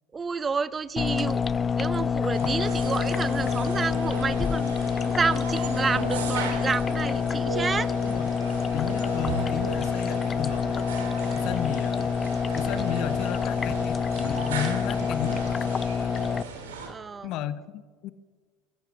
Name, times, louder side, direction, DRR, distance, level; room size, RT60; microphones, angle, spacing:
voice 1, 0.1-1.5 1.7-7.9 16.8-17.3, right 5 dB, 25° right, 19 dB, 0.5 m, -30 dB
sound 1, 1.0-16.4, left 6 dB, 25° left, 0.3 m, -27 dB
sound 2, 2.3-16.9, right 5 dB, 75° right, 4.1 m, -37 dB
voice 2, 8.7-10.9 11.3-12.1 12.5-15.8 17.2-18.1, left 11 dB, 50° left, 14 dB, 0.9 m, -34 dB
Walk footsteps, 8.7-9.0 9.3-12.3 12.5-12.9 13.1-14.5 14.9-15.2, right 6 dB, 45° right, 1.2 m, -41 dB
24.5 x 16.0 x 2.6 m, 1.5 s
figure-of-eight pair, 75°, 0 cm